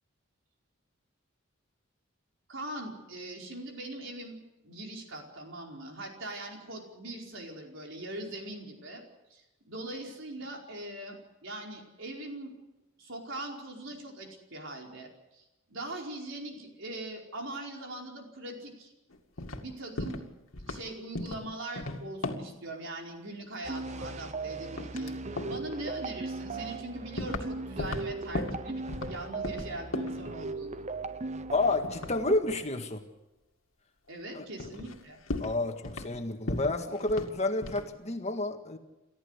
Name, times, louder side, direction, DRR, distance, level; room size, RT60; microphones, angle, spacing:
voice 1, 2.5-4.4 4.6-9.0 9.3-12.5 13.0-18.9 19.6-20.2 20.7-30.8 34.1-35.2, right 1 dB, 65° right, 1 dB, 4.9 m, -41 dB
sound 1, 19.1-19.7 20.0-20.3 20.5-20.8 21.2-21.5 21.8-22.6 23.8-24.5 24.8-25.1 25.4-25.7 26.4-26.5 27.2-27.5 27.8-29.2 29.4-30.2 31.8-32.6 34.1-34.2 34.6-35.0 35.3-36.2 36.5-37.4 37.6-37.9, left 2 dB, 75° left, 2.2 m, -36 dB
sound 2, 23.6-32.4, right 3 dB, 35° right, 0.8 m, -38 dB
voice 2, 31.5-33.0 34.3-34.5 35.4-38.8, left 2 dB, 35° left, 5 dB, 1.8 m, -30 dB
29.5 x 14.0 x 8.3 m, 0.99 s
head